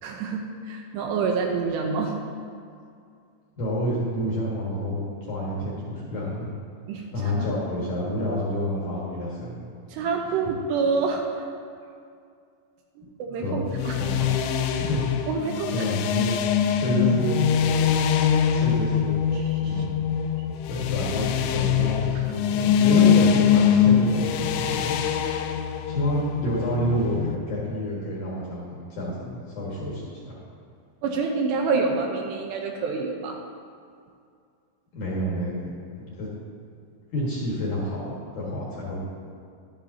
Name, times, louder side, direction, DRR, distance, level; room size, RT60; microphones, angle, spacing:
voice 1, 0.0-2.2 6.9-7.1 9.9-11.5 13.0-14.0 15.3-15.9 19.3-19.8 31.0-33.4, right 4 dB, 80° right, 2 dB, 2.7 m, -27 dB
voice 2, 3.6-6.5 7.1-9.6 13.4-13.6 14.0-14.3 14.8-15.0 15.7-17.4 18.5-19.2 19.7-19.9 20.7-24.9 25.8-30.4 34.9-35.5 36.0-36.3 37.1-39.0, equal, 60° left, -6 dB, 2.3 m, -28 dB
sound 1, 13.7-27.4, left 8 dB, 85° left, 2.9 m, -23 dB
12.0 x 10.5 x 2.7 m, 2.3 s
omnidirectional pair, 5.2 m